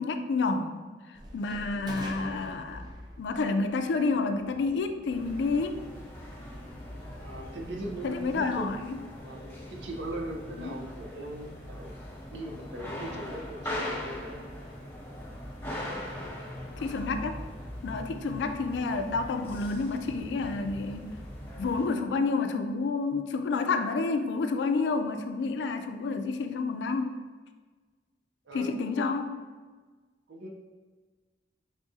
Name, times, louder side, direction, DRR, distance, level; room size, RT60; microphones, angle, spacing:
voice 1, 0.0-2.8 3.2-5.8 8.0-9.0 10.6-10.8 16.8-17.4 17.8-21.1 21.6-27.2 28.5-29.3, left 4 dB, 75° left, 7 dB, 0.3 m, -29 dB
sound 1, 1.1-8.7, equal, 25° right, 0.4 m, -46 dB
sound 2, 5.1-21.9, left 1 dB, 15° left, 0.7 m, -41 dB
voice 2, 7.2-8.7 9.2-11.9 12.3-14.5 28.5-29.0 30.3-30.5, right 1 dB, 85° right, 1 dB, 0.6 m, -40 dB
3.7 x 3.6 x 2.7 m, 1.4 s
head